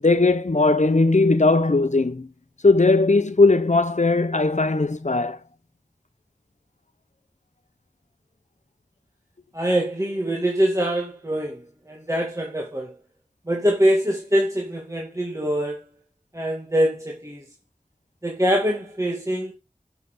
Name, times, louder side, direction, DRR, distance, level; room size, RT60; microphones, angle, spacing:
voice 1, 0.0-2.3 2.6-5.4, left 3 dB, 60° left, 1.0 m, -18 dB
voice 2, 9.5-12.9 13.5-15.8 16.3-17.4 18.2-19.5, equal, 20° right, 2.5 m, -24 dB
12.0 x 7.0 x 4.0 m
wide cardioid pair, 45°, 14 cm